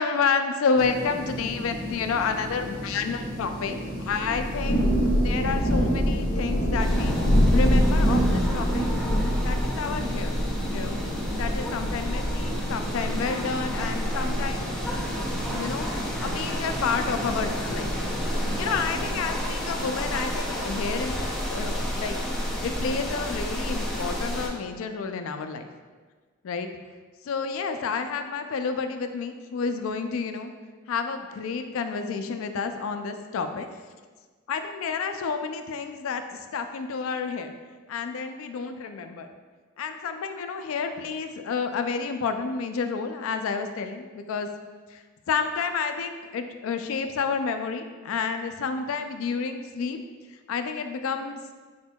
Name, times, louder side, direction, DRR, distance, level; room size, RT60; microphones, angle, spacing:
voice 1, 0.0-7.2 7.5-8.8 9.4-10.4 10.7-11.0 11.4-14.7 15.5-15.9 16.2-17.9 18.6-21.2 21.5-22.2 22.6-25.7 26.4-26.7 27.2-30.5 30.9-33.7 34.5-37.5 37.9-39.3 39.8-44.5 44.9-50.0 50.5-51.4, left 5 dB, 70° left, 8 dB, 0.3 m, -30 dB
sound 1, 0.7-19.1, equal, 45° right, 1.1 m, -36 dB
Thunder / Rain, 4.1-12.7, equal, 35° left, 0.9 m, -24 dB
sound 2, 6.8-24.5, equal, ahead, 0.5 m, -31 dB
4.4 x 4.1 x 2.2 m, 1.4 s
head